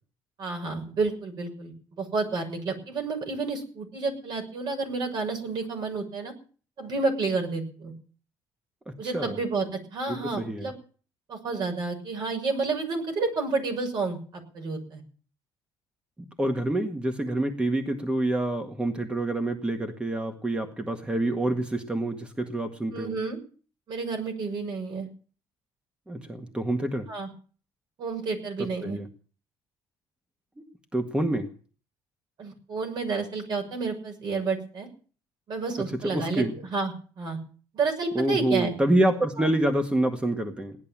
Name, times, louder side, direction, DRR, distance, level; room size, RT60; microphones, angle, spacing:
voice 1, 0.4-6.3 6.8-7.9 9.0-10.7 11.3-15.0 22.9-23.4 23.9-25.1 27.1-27.3 28.0-29.0 32.4-34.9 35.5-36.4 36.7-37.4 37.7-38.7 39.4-39.5, right 4 dB, 55° right, 4 dB, 6.3 m, -30 dB
voice 2, 8.9-9.4 10.1-10.7 16.4-23.2 26.1-27.1 28.6-29.1 30.6-30.7 30.9-31.5 36.1-36.6 38.2-40.8, right 1 dB, 10° right, 5 dB, 1.8 m, -27 dB
18.0 x 11.0 x 7.4 m, 0.42 s
cardioid pair, 110°, 9 cm